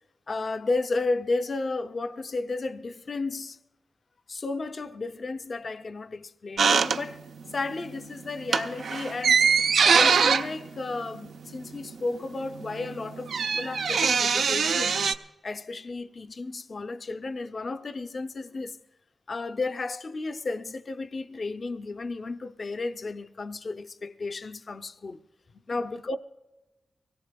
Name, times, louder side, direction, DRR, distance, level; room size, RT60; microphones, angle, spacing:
voice 1, 0.3-3.6 4.3-9.5 9.9-15.0 15.4-18.8 19.3-25.2 25.5-26.2, left 3 dB, 50° left, 0.5 m, -33 dB
sound 1, 6.6-7.5 7.8-8.0 8.4-11.9 12.1-12.2 12.4-15.1, right 6 dB, 85° right, 0.4 m, -23 dB
24.5 x 17.5 x 2.2 m
wide cardioid pair, 85°, 0 cm